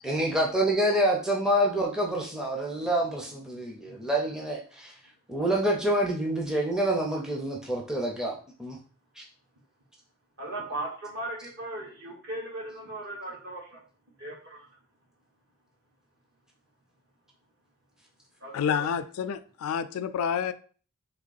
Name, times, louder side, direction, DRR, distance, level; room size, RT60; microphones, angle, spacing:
voice 1, 0.0-4.9 5.3-8.8 9.2-9.3, right 1 dB, 5° right, 0.5 m, -27 dB
voice 2, 3.5-3.9 10.4-13.8 14.2-14.7 18.4-18.9, right 1 dB, 50° right, 1.5 m, -38 dB
voice 3, 18.5-20.5, left 7 dB, 80° left, 0.3 m, -29 dB
3.6 x 3.0 x 4.0 m
head